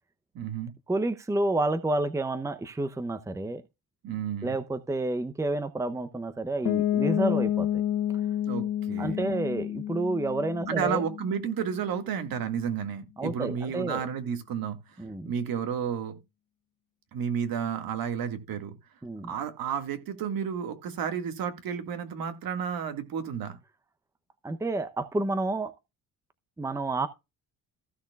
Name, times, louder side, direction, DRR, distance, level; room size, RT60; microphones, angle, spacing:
voice 1, 0.3-0.7 4.0-4.5 8.5-9.3 10.7-14.8 15.3-16.2 17.1-18.8 19.3-23.6, right 7 dB, 70° right, 2.0 m, -32 dB
voice 2, 0.9-3.6 4.4-7.7 9.0-11.0 13.2-14.1 15.0-15.3 19.0-19.3 24.4-25.7 26.6-27.1, right 2 dB, 10° right, 0.7 m, -29 dB
Piano, 6.7-12.4, left 11 dB, 65° left, 1.7 m, -30 dB
15.0 x 6.5 x 2.4 m
cardioid pair, 115°, 37 cm